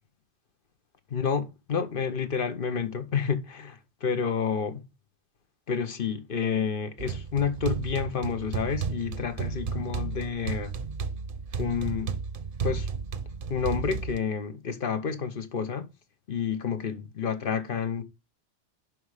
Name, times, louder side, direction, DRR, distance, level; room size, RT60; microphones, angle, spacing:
voice 1, 1.1-4.8 5.7-10.7 11.6-12.2 12.6-12.9 13.5-15.9 16.3-18.0, left 6 dB, 55° left, 1.1 m, -29 dB
sound 1, 7.0-14.2, right 5 dB, 55° right, 0.9 m, -33 dB
7.6 x 5.4 x 5.0 m
omnidirectional pair, 1.2 m